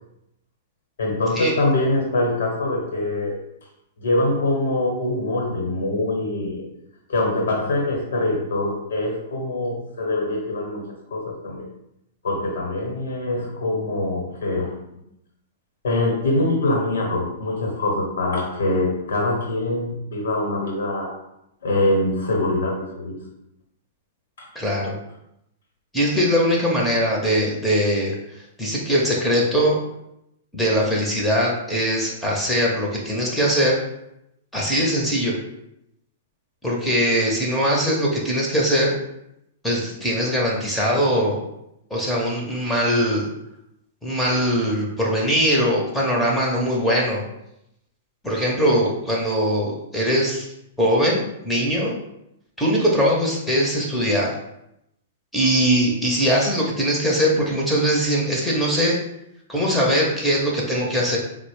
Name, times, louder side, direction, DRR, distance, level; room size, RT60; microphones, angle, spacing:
voice 1, 1.0-3.4 4.0-6.7 7.1-11.7 12.2-14.8 15.8-21.2 21.6-23.2, left 2 dB, 60° left, -1 dB, 1.0 m, -24 dB
voice 2, 24.6-25.0 25.9-28.1 28.6-29.8 30.5-33.8 34.5-35.4 36.6-38.9 39.6-41.4 41.9-43.3 44.0-47.2 48.2-50.5 50.8-51.9 52.6-54.3 55.3-59.0 59.5-61.2, equal, 5° left, -4 dB, 0.7 m, -21 dB
4.0 x 2.1 x 3.1 m, 0.82 s
figure-of-eight pair, 105°, 0 cm